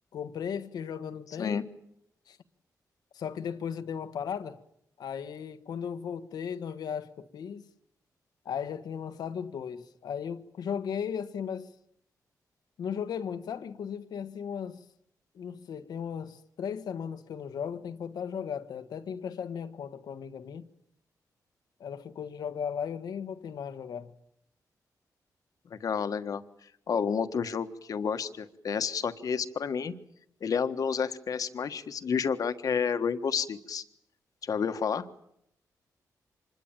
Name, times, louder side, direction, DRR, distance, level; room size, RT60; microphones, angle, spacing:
voice 1, 0.1-1.6 2.3-2.4 3.1-4.6 5.0-7.7 8.4-11.7 12.8-14.8 15.3-20.6 21.8-24.1, left 7 dB, 85° left, 1.4 m, -36 dB
voice 2, 25.7-26.4 26.9-29.9 30.4-33.8 34.4-35.0, left 6 dB, 60° left, 1.5 m, -30 dB
26.0 x 21.0 x 9.1 m
wide cardioid pair, 110°, 7 cm